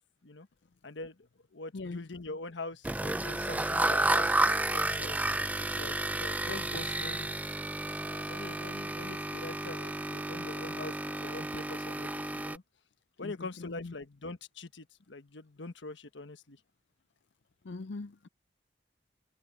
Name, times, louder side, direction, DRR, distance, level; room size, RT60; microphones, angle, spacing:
voice 1, 0.8-5.2 5.7-7.3 7.8-12.6 13.2-16.6, left 3 dB, 90° left, 1.3 m, -44 dB
voice 2, 1.7-2.1 13.2-13.9 17.6-18.3, left 3 dB, 70° left, 0.5 m, -41 dB
sound 1, 2.8-12.6, right 2 dB, 10° right, 0.6 m, -32 dB
head